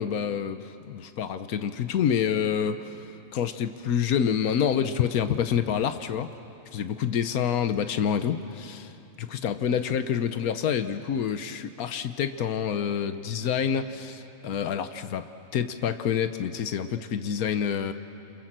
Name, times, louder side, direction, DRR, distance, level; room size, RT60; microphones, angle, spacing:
voice 1, 0.0-6.3 6.7-15.3 15.5-17.9, left 8 dB, 90° left, 9 dB, 1.4 m, -27 dB
28.5 x 27.5 x 7.5 m, 2.8 s
omnidirectional pair, 1.5 m